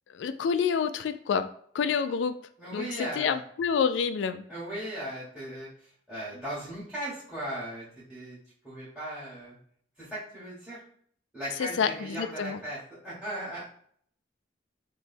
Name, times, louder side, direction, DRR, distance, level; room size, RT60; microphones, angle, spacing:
voice 1, 0.1-1.5 1.7-2.4 2.7-4.4 11.6-12.6, left 6 dB, 80° left, 10 dB, 0.3 m, -28 dB
voice 2, 2.6-3.4 4.5-8.4 8.6-9.6 10.0-10.8 11.3-13.7, right 1 dB, 5° right, -10 dB, 1.6 m, -37 dB
3.4 x 3.0 x 4.2 m, 0.62 s
head